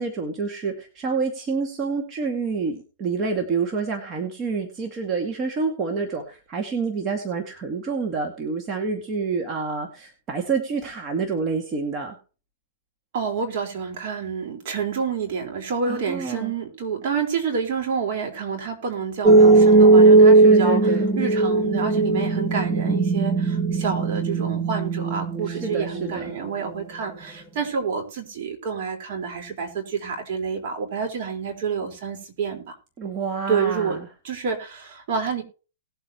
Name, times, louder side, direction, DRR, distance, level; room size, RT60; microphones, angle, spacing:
voice 1, 0.0-12.2 15.9-16.5 20.4-21.1 25.5-26.3 33.0-34.1, right 5 dB, 25° right, 2 dB, 2.1 m, -28 dB
voice 2, 13.1-32.7 33.5-34.0 34.2-35.4, right 6 dB, 50° right, 2 dB, 4.4 m, -28 dB
sound 1, 19.2-26.2, right 3 dB, 5° right, 1.0 m, -17 dB
19.5 x 8.0 x 3.0 m, 0.35 s
hypercardioid pair, 145°, 0 cm